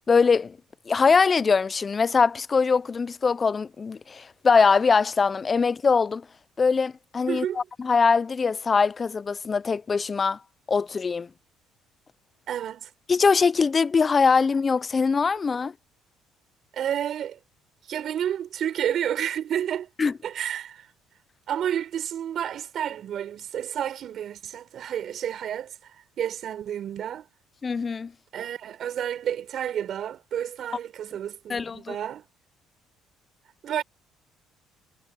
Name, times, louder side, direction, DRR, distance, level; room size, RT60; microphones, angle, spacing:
voice 1, 0.1-0.6 0.9-6.2 6.6-10.4 10.7-11.3 13.1-15.7 20.0-20.1 27.6-28.1 31.5-32.0, left 5 dB, 30° left, 0.6 m, -22 dB
voice 2, 7.3-7.6 12.5-12.9 16.7-17.4 17.9-19.9 20.2-20.9 21.5-27.3 28.3-32.3 33.6-33.8, right 10 dB, 55° right, 5.8 m, -30 dB
cardioid pair, 95°, 0 cm